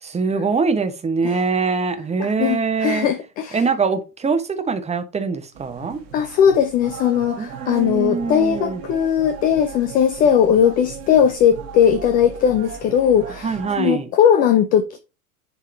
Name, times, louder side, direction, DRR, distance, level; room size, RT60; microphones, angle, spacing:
voice 1, 0.0-3.1 3.5-6.0 7.4-8.8 13.4-14.1, right 4 dB, 15° right, 1.0 m, -23 dB
voice 2, 2.2-3.6 6.1-15.0, left 8 dB, 20° left, 0.3 m, -18 dB
sound 1, 5.5-13.8, right 6 dB, 55° right, 1.8 m, -37 dB
10.0 x 3.6 x 3.3 m
figure-of-eight pair, 85°, 47 cm